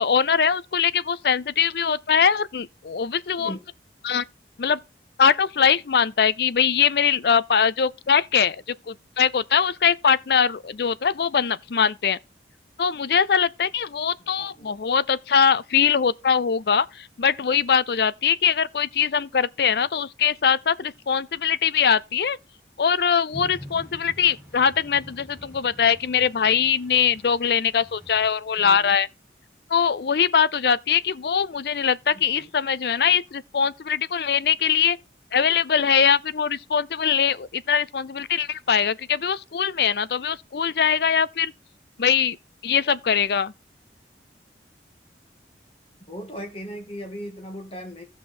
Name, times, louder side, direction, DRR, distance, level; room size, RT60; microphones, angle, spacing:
voice 1, 0.0-3.5 4.0-4.3 4.6-4.8 5.2-12.2 12.8-22.4 22.8-29.1 29.7-35.0 35.3-41.5 42.0-42.4 42.6-43.5, left 7 dB, 60° left, 0.5 m, -22 dB
voice 2, 14.2-14.7 28.6-29.0 32.1-32.5 46.0-48.0, equal, 35° left, 2.1 m, -38 dB
sound 1, 23.3-28.3, equal, 5° left, 5.6 m, -45 dB
15.0 x 5.7 x 4.2 m
head